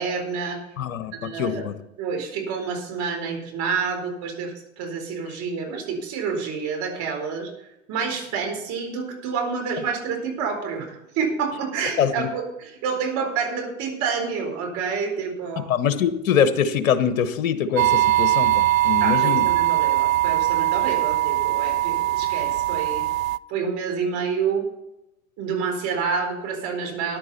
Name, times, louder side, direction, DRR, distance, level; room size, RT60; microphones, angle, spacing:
voice 1, 0.0-0.6 1.2-1.7 2.0-7.5 7.9-15.7 19.0-23.0 23.5-24.7 25.4-27.2, right 5 dB, 40° right, 2 dB, 4.3 m, -28 dB
voice 2, 0.8-1.7 12.0-12.3 15.6-19.5, left 8 dB, 70° left, 11 dB, 1.2 m, -23 dB
sound 1, 17.8-23.4, right 15 dB, 75° right, 0.5 m, -21 dB
14.5 x 10.5 x 4.2 m, 0.89 s
hypercardioid pair, 95°, 41 cm